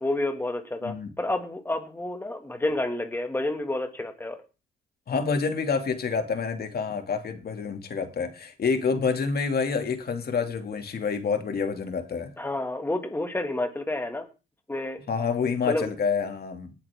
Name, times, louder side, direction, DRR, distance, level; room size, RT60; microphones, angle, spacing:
voice 1, 0.0-4.4 12.4-14.3 14.7-15.0 15.6-15.9, left 2 dB, 10° left, 2.1 m, -29 dB
voice 2, 0.8-1.1 5.1-12.3 15.1-16.7, left 5 dB, 50° left, 2.5 m, -28 dB
19.0 x 8.6 x 3.7 m
cardioid pair, 90°, 20 cm